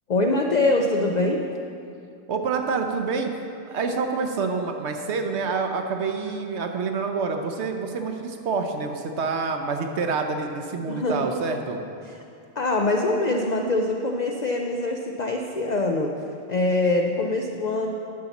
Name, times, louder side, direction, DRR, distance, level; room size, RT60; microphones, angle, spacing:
voice 1, 0.1-1.5 10.9-11.3 12.0-12.2 12.6-16.1 16.5-18.0, left 2 dB, 70° left, 2 dB, 0.4 m, -24 dB
voice 2, 2.3-3.3 3.7-11.8, right 4 dB, 60° right, 4 dB, 0.9 m, -27 dB
11.5 x 4.0 x 7.0 m, 2.6 s
omnidirectional pair, 1.4 m